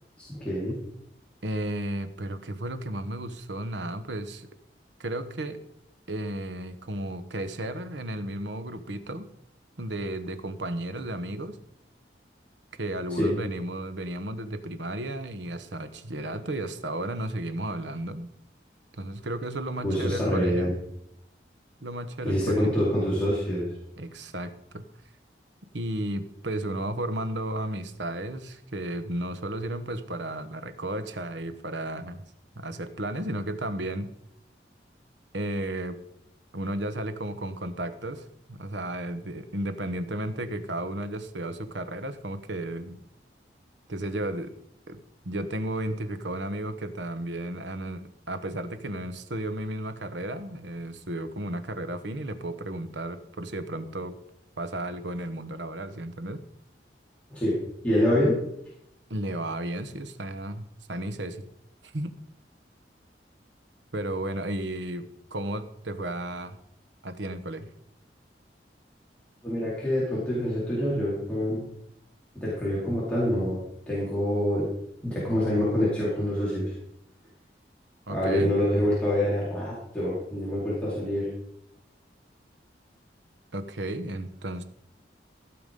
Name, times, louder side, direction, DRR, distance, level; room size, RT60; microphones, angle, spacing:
voice 1, 0.2-0.8 13.2-13.3 19.8-20.7 22.2-23.7 57.3-57.6 57.8-58.4 69.4-71.6 72.3-74.7 75.0-76.7 78.1-81.3, left 1 dB, 5° left, -9 dB, 4.4 m, -26 dB
voice 2, 1.4-4.5 5.0-5.6 6.1-9.3 9.8-11.6 12.8-18.3 19.0-20.7 21.8-22.8 24.0-24.8 25.7-32.2 32.5-34.1 35.3-36.0 36.5-43.0 43.9-44.5 44.9-54.2 54.6-56.4 59.1-60.6 60.9-61.5 61.8-62.1 63.9-66.6 67.0-67.7 78.1-78.5 83.5-84.6, right 1 dB, 90° right, 10 dB, 1.2 m, -33 dB
15.5 x 7.1 x 5.4 m, 0.77 s
head